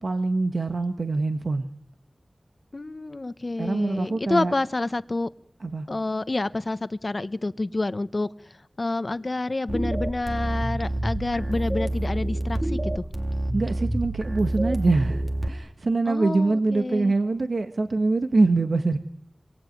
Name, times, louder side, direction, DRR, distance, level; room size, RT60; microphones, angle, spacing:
voice 1, 0.0-1.7 3.6-4.5 5.6-5.9 13.5-19.0, right 3 dB, 75° right, 7 dB, 1.6 m, -24 dB
voice 2, 2.7-5.3 5.9-13.1 16.1-17.1, left 2 dB, 45° left, 13 dB, 1.1 m, -28 dB
sound 1, 9.7-15.5, right 1 dB, 40° right, 2.8 m, -27 dB
26.5 x 23.0 x 9.4 m, 0.70 s
wide cardioid pair, 60°, 0 cm